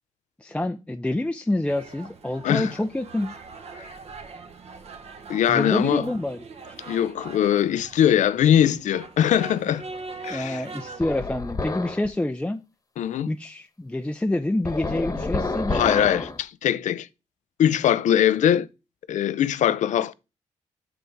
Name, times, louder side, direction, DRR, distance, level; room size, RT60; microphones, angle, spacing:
voice 1, 0.4-3.3 5.5-6.8 10.3-12.6 13.3-15.8, left 1 dB, 10° left, 0.5 m, -27 dB
sound 1, 1.7-11.0, right 4 dB, 55° right, 1.2 m, -42 dB
voice 2, 5.3-6.1 6.9-9.8 10.2-10.6 13.0-13.3 15.7-17.1 17.6-18.7 19.1-20.1, left 10 dB, 75° left, 0.5 m, -21 dB
sound 2, 11.0-12.1 14.6-16.4, left 3 dB, 30° left, 1.1 m, -28 dB
7.9 x 3.5 x 6.4 m
cardioid pair, 85°, 13 cm